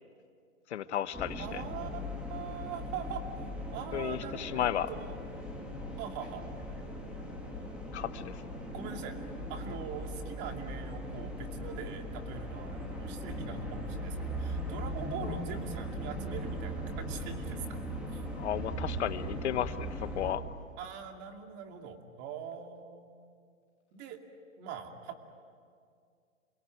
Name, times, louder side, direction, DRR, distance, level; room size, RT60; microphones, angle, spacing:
voice 1, 0.7-1.6 3.9-4.9 7.9-8.3 15.2-15.3 18.3-20.5, left 10 dB, 55° left, 13 dB, 1.2 m, -34 dB
sound 1, 1.1-20.3, equal, 5° right, 2.6 m, -39 dB
voice 2, 1.4-3.2 3.7-5.2 6.0-6.4 8.7-9.2 9.5-17.8 18.1-18.2 20.8-23.1 23.9-24.2 24.6-25.2, right 7 dB, 25° right, 4 dB, 2.5 m, -42 dB
28.5 x 22.5 x 9.2 m, 2.2 s
hypercardioid pair, 140°, 40 cm